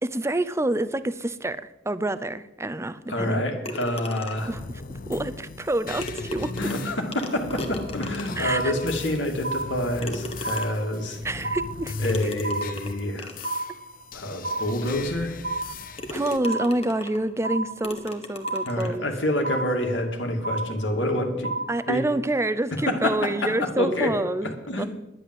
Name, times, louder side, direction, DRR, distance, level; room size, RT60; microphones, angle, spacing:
voice 1, 0.0-3.4 4.5-4.6 5.1-6.7 8.4-8.7 11.2-12.1 16.1-19.1 21.7-24.8, right 1 dB, 15° right, 13 dB, 0.6 m, -27 dB
voice 2, 3.1-4.5 6.6-11.2 12.0-13.3 14.1-15.4 18.7-21.5 21.9-22.0 22.7-24.1 24.7-24.9, left 1 dB, 80° left, 3 dB, 2.4 m, -27 dB
sound 1, 3.6-4.6 5.7-5.8 6.0-8.6 9.2-9.3 10.0-11.0 12.0-13.6 14.3-14.4 14.9-15.0 15.5-15.7 16.0-17.3 17.8-19.0, left 1 dB, 35° left, 1.5 m, -37 dB
sound 2, 4.4-16.4, left 4 dB, 50° left, 0.6 m, -38 dB
sound 3, 7.8-8.1 8.4-9.1 9.4-10.1 10.4-11.1 11.4-12.1 12.4-13.1 13.4-14.1 14.4-15.1 15.4-16.1 16.4-17.1 17.4-18.1 18.4-19.1 19.4-20.1 20.4-21.1 21.4-22.1, right 2 dB, 60° right, 1.8 m, -32 dB
10.5 x 10.5 x 7.8 m, 0.97 s
head